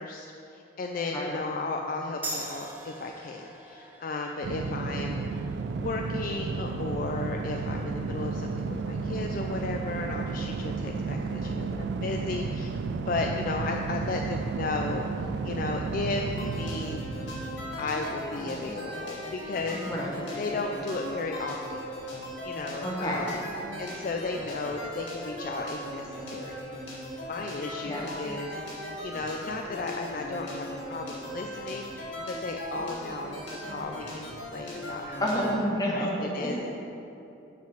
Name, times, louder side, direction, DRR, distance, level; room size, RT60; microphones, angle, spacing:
voice 1, 0.0-5.5 5.8-12.8 13.1-17.0 17.8-19.8 20.4-21.9 22.2-23.4 23.8-26.6 27.3-35.3 35.9-36.7, left 3 dB, 45° left, 2 dB, 0.3 m, -34 dB
sound 1, 2.2-9.3, right 1 dB, 10° right, 0.8 m, -44 dB
sound 2, 4.4-18.8, right 4 dB, 60° right, 0.3 m, -33 dB
sound 3, 16.4-35.6, equal, 75° left, 1.8 m, -38 dB
voice 2, 19.7-20.2 22.8-23.3 27.9-28.1 35.2-36.7, equal, 20° left, -2 dB, 1.0 m, -29 dB
6.6 x 5.1 x 6.5 m, 2.9 s
head